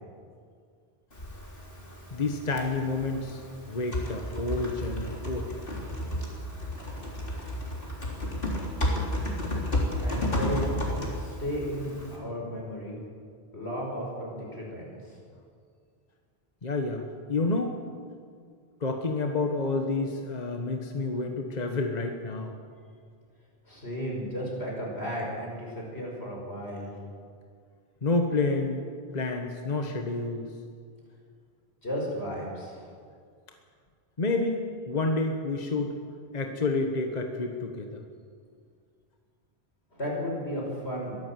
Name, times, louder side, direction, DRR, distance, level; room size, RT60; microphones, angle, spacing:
Typing, 1.1-12.2, left 1 dB, 55° left, 4.0 m, -32 dB
voice 1, 2.1-3.4 3.7-5.5 16.6-17.0 17.3-17.8 18.8-22.6 28.0-28.9 29.1-30.5 34.2-35.9 36.3-38.0, left 3 dB, 40° left, 3 dB, 1.5 m, -29 dB
voice 2, 10.0-10.7 11.1-13.0 13.5-15.2 23.7-26.9 31.8-32.9 39.9-41.2, equal, 80° left, -2 dB, 6.2 m, -34 dB
23.0 x 15.0 x 7.7 m, 2.1 s
omnidirectional pair, 1.1 m